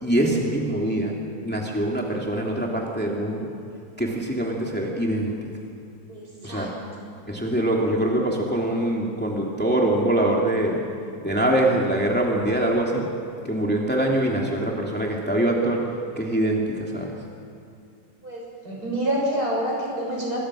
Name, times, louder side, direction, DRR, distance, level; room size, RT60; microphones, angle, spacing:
voice 1, 0.0-1.1 1.4-3.5 4.0-5.3 6.4-6.7 7.3-10.8 11.2-13.0 13.4-15.8 16.2-17.1, right 1 dB, 5° left, -2 dB, 2.8 m, -23 dB
voice 2, 6.1-6.7 18.2-20.4, equal, 65° right, -2 dB, 7.2 m, -27 dB
26.0 x 22.0 x 6.3 m, 2.6 s
omnidirectional pair, 1.7 m